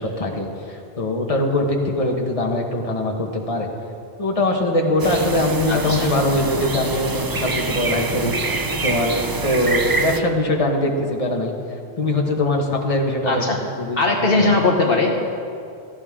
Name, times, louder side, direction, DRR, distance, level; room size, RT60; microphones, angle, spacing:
voice 1, 0.0-3.7 4.2-11.5 12.0-13.4 13.8-14.5, left 1 dB, 30° left, 1 dB, 1.4 m, -22 dB
sound 1, 5.0-10.2, right 3 dB, 30° right, 0.4 m, -25 dB
voice 2, 5.7-6.1 13.2-13.6 14.0-15.4, left 2 dB, 60° left, 1 dB, 1.3 m, -20 dB
17.5 x 14.5 x 3.7 m, 2.5 s
omnidirectional pair, 1.1 m